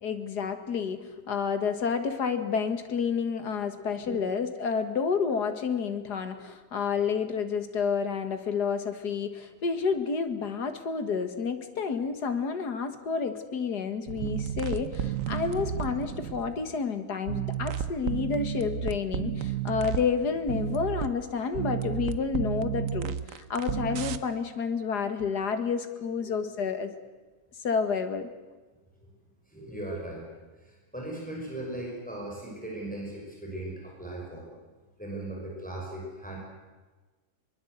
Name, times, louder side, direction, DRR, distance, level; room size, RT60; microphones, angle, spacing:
voice 1, 0.0-26.9 27.6-28.3, left 6 dB, 85° left, 8 dB, 2.2 m, -30 dB
voice 2, 4.1-4.4 26.2-26.3 29.0-29.1 29.5-30.3 30.6-34.5 35.0-36.4, right 1 dB, 5° left, -2 dB, 5.9 m, -38 dB
sound 1, 14.1-16.8 17.3-21.1 21.5-24.2, right 8 dB, 60° right, 1.2 m, -32 dB
22.5 x 21.5 x 8.1 m, 1.3 s
omnidirectional pair, 1.7 m